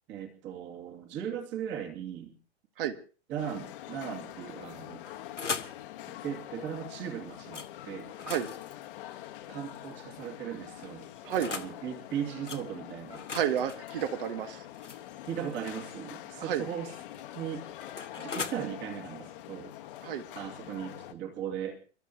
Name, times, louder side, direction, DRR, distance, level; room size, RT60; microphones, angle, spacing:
voice 1, 0.1-2.3 3.3-5.0 6.2-8.1 9.5-11.1 11.5-13.3 15.3-16.9 17.3-17.7 18.2-19.7 20.3-21.8, right 9 dB, 30° right, 3 dB, 2.5 m, -38 dB
sound 1, 3.4-21.1, left 13 dB, 50° left, 1.4 m, -45 dB
sound 2, 4.8-5.8 7.5-7.7 8.1-10.0 10.8-11.8 12.5-12.6 13.1-15.8 16.9-18.6, left 5 dB, 85° left, 1.3 m, -40 dB
voice 2, 13.3-14.6 16.4-16.7 20.0-20.2, right 10 dB, 50° right, 11 dB, 1.5 m, -31 dB
29.5 x 13.0 x 2.9 m, 0.37 s
figure-of-eight pair, 100°, 35 cm